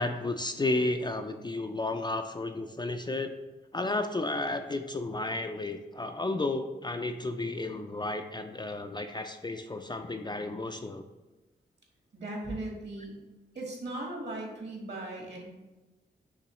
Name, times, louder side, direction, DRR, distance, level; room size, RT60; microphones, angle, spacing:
voice 1, 0.0-3.3 3.7-11.0, left 2 dB, 20° left, 6 dB, 0.3 m, -32 dB
voice 2, 12.1-13.2 13.5-15.4, right 2 dB, 55° right, 0 dB, 1.5 m, -38 dB
5.6 x 3.0 x 3.0 m, 1.1 s
supercardioid pair, 45°, 20 cm